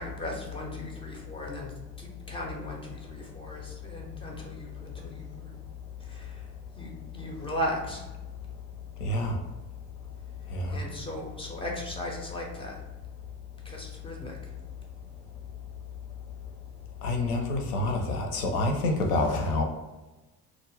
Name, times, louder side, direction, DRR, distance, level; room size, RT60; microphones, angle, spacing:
voice 1, 0.0-1.7 2.0-5.6 6.0-6.4 6.8-8.1 10.7-12.8 13.6-14.5, equal, 15° left, -1 dB, 0.4 m, -37 dB
voice 2, 9.0-9.4 10.5-10.8 17.0-19.6, left 2 dB, 80° left, 3 dB, 0.6 m, -27 dB
2.3 x 2.1 x 3.1 m, 1.1 s
figure-of-eight pair, 55°, 46 cm